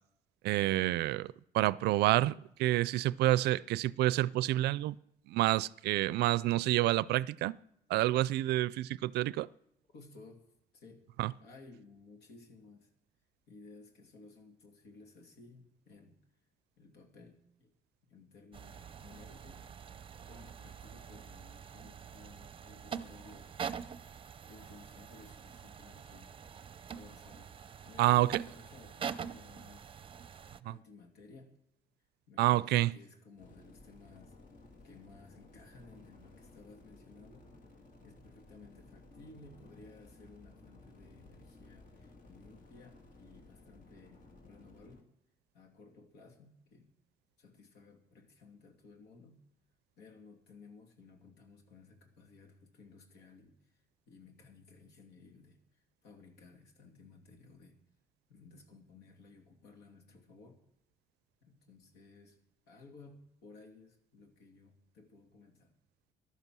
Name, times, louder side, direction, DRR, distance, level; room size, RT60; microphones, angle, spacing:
voice 1, 0.4-5.0 5.3-7.6 7.9-9.5 11.2-11.3 28.0-28.3 32.4-32.9, right 16 dB, 75° right, 0.4 m, -28 dB
voice 2, 9.9-10.5 10.7-11.0 11.4-12.9 13.5-16.2 16.8-17.7 18.0-19.9 20.2-23.5 24.5-26.4 26.9-27.5 27.8-29.9 30.6-31.5 32.3-34.3 34.8-37.5 38.0-45.1 45.5-46.9 47.4-49.5 50.0-53.8 54.1-57.8 58.3-60.6 61.4-62.4 62.7-65.7, left 3 dB, 75° left, 2.8 m, -57 dB
sound 1, 18.5-30.6, right 7 dB, 30° right, 0.7 m, -45 dB
sound 2, 33.4-45.0, left 2 dB, 50° left, 2.5 m, -57 dB
14.5 x 11.5 x 6.1 m
cardioid pair, 110°, 17 cm